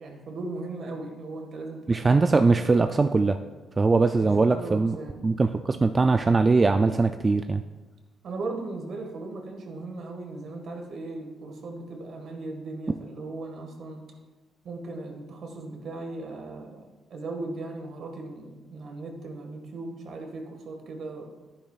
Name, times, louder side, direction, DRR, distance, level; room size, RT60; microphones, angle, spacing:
voice 1, 0.0-2.4 4.2-5.3 8.2-14.1 14.6-21.3, right 2 dB, 60° right, 3 dB, 1.7 m, -38 dB
voice 2, 1.9-3.4 3.8-5.0 5.2-7.6, right 3 dB, 25° right, 8 dB, 0.3 m, -21 dB
11.5 x 10.0 x 2.4 m, 1.2 s
cardioid pair, 90°, 0 cm